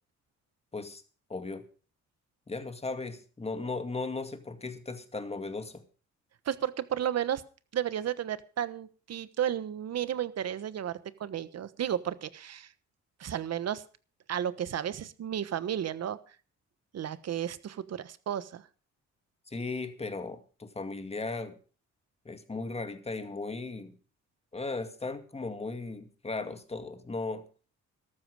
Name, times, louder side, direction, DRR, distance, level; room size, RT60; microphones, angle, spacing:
voice 1, 1.3-1.7 2.5-5.8 19.5-21.6 22.3-24.0 24.5-27.4, left 3 dB, 20° left, 2.1 m, -36 dB
voice 2, 6.5-7.4 7.7-12.7 13.2-13.8 14.3-16.2 16.9-18.6, right 10 dB, 55° right, 1.2 m, -33 dB
13.5 x 13.0 x 4.9 m
cardioid pair, 90°, 30 cm